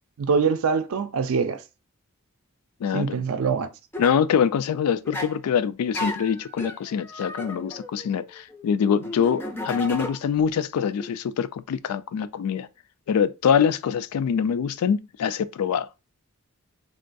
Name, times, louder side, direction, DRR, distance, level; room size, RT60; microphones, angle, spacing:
voice 1, 0.2-1.6 2.9-3.7, right 5 dB, 70° right, 0.4 m, -24 dB
voice 2, 2.8-3.2 4.0-12.7 13.1-15.9, left 7 dB, 85° left, 0.3 m, -24 dB
sound 1, 3.9-4.2 5.0-5.4 5.9-10.5 10.8-11.1 13.5-13.6, left 1 dB, 10° left, 0.4 m, -35 dB
3.5 x 2.2 x 2.5 m
head